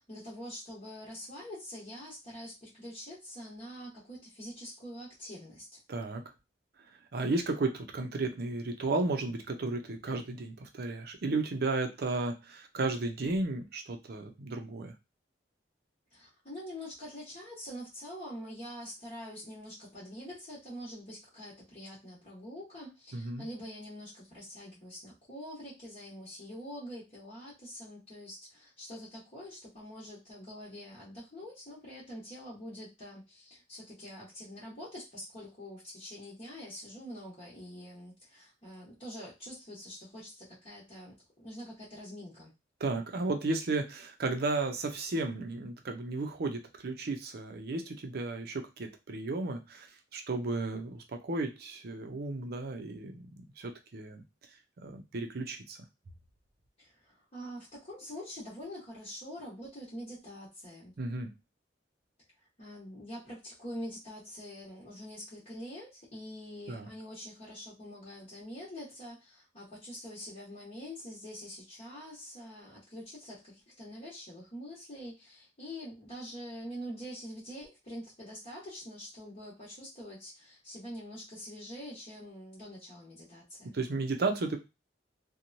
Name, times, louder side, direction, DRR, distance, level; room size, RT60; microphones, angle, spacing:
voice 1, 0.0-5.8 16.1-42.5 56.8-60.9 62.6-83.8, equal, 40° left, -8 dB, 1.1 m, -45 dB
voice 2, 5.9-6.2 7.1-14.9 23.1-23.4 42.8-49.9 50.1-54.2 54.8-55.8 61.0-61.3 66.7-66.9 83.7-84.6, right 3 dB, 60° right, 4 dB, 0.6 m, -34 dB
3.0 x 2.2 x 2.6 m, 0.24 s
head